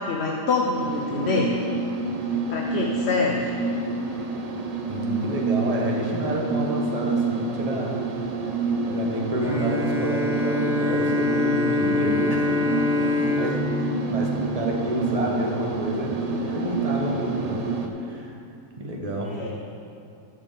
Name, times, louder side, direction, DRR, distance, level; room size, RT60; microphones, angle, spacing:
voice 1, 0.0-1.5 2.5-3.4 19.2-19.5, left 4 dB, 55° left, 0 dB, 0.8 m, -25 dB
sound 1, 0.7-17.9, right 3 dB, 75° right, 0.3 m, -28 dB
voice 2, 4.9-8.0 8.8-12.5 13.2-17.6 18.0-18.4 18.8-19.3, right 1 dB, 25° right, -1 dB, 1.2 m, -29 dB
Bowed string instrument, 9.4-15.1, left 3 dB, ahead, 0.7 m, -25 dB
7.8 x 6.3 x 7.9 m, 2.7 s
omnidirectional pair, 1.7 m